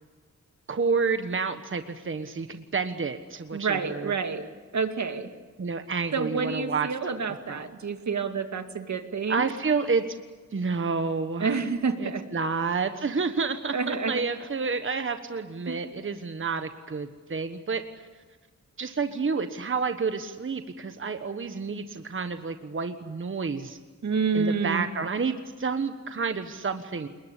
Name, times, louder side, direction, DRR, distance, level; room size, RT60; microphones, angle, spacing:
voice 1, 0.7-4.1 5.6-6.9 7.5-7.6 9.3-10.0 10.5-11.6 12.0-17.8 18.8-23.8 24.3-27.1, right 4 dB, 45° right, 8 dB, 1.4 m, -29 dB
voice 2, 3.5-4.5 4.7-5.3 6.1-9.5 11.4-12.2 13.7-14.1 15.7-15.8 24.0-24.8, right 5 dB, 75° right, 7 dB, 2.2 m, -28 dB
29.5 x 21.0 x 8.4 m, 1.4 s
wide cardioid pair, 95°, 29 cm